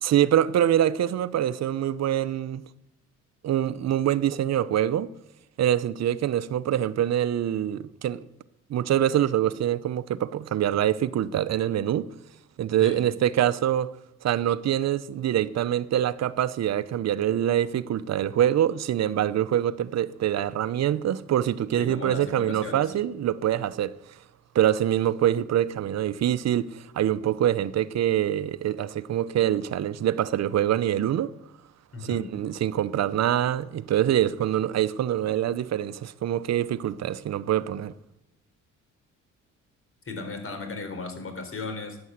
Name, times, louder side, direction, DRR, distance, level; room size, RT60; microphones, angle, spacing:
voice 1, 0.0-2.6 3.4-5.1 5.6-8.2 8.7-12.1 12.6-13.9 14.2-23.9 24.5-31.3 32.0-37.9, right 11 dB, 60° right, 0.8 m, -25 dB
voice 2, 21.8-22.9 31.9-32.3 40.1-42.0, left 3 dB, 45° left, 3.8 m, -36 dB
13.5 x 9.7 x 8.1 m
cardioid pair, 90°, 30 cm